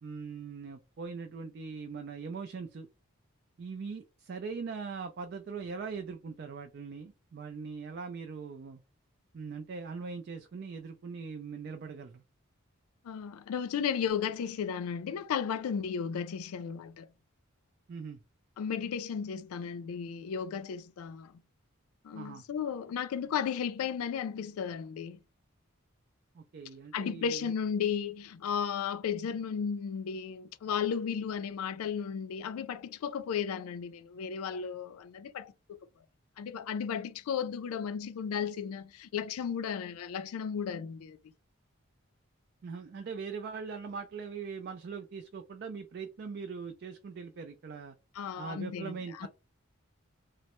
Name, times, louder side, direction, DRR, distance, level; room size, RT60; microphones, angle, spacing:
voice 1, 0.0-2.9 3.6-8.8 9.3-12.2 17.9-18.2 22.1-22.4 26.3-27.5 42.6-48.0 48.4-49.3, right 5 dB, 50° right, 0.3 m, -41 dB
voice 2, 13.0-17.1 18.6-21.3 22.0-25.2 26.9-35.8 36.4-41.2 48.2-49.3, left 7 dB, 85° left, 0.3 m, -34 dB
3.1 x 2.0 x 2.9 m
head